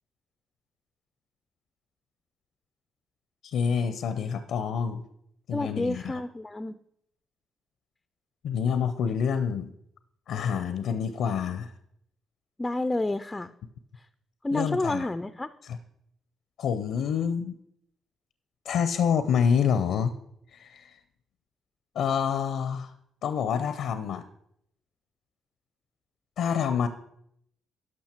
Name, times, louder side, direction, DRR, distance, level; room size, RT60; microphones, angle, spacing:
voice 1, 3.4-5.0 5.5-6.2 8.4-9.7 10.3-11.7 14.5-15.1 15.6-15.8 16.6-17.5 18.6-20.1 20.5-21.0 21.9-22.9 23.2-24.2 26.4-26.9, left 7 dB, 75° left, 11 dB, 0.6 m, -27 dB
voice 2, 5.5-6.8 12.6-13.5 14.4-15.5, left 2 dB, 15° left, 12 dB, 0.4 m, -29 dB
11.5 x 6.1 x 4.4 m, 0.73 s
cardioid pair, 90°, 0 cm